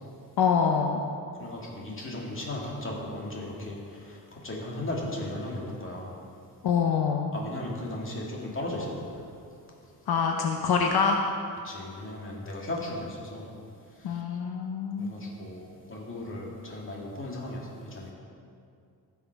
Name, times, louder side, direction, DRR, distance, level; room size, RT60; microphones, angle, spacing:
voice 1, 0.4-1.0 6.6-7.3 10.1-11.2 14.0-15.1, left 6 dB, 75° left, 2 dB, 0.8 m, -25 dB
voice 2, 1.4-6.1 7.3-9.3 9.9-10.1 11.6-13.5 13.9-14.2 15.0-18.1, left 1 dB, 30° left, -3 dB, 2.2 m, -36 dB
15.5 x 5.8 x 4.6 m, 2.4 s
cardioid pair, 125°, 38 cm